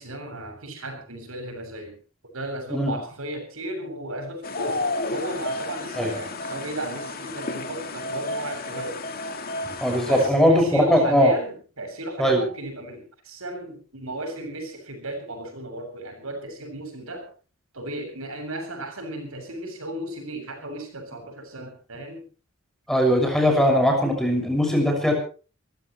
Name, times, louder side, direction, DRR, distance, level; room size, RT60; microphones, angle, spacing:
voice 1, 0.0-2.0 2.3-9.0 10.1-17.3 17.7-22.3, right 1 dB, 85° right, 6 dB, 7.4 m, -35 dB
sound 1, 4.4-10.3, left 2 dB, 45° left, 2.3 m, -32 dB
voice 2, 9.8-11.3 12.2-12.4 22.9-25.1, equal, ahead, 2 dB, 6.3 m, -20 dB
27.0 x 15.0 x 3.2 m, 0.37 s
head